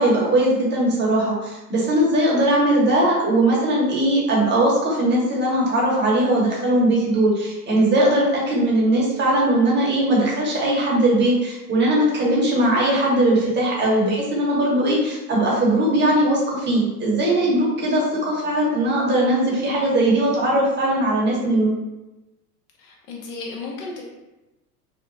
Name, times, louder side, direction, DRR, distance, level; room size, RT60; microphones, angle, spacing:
voice 1, 0.0-21.7, right 1 dB, 25° right, -4 dB, 0.9 m, -19 dB
voice 2, 22.8-24.0, left 3 dB, 45° left, -1 dB, 0.9 m, -34 dB
3.0 x 2.1 x 2.5 m, 1.0 s
hypercardioid pair, 90°, 46 cm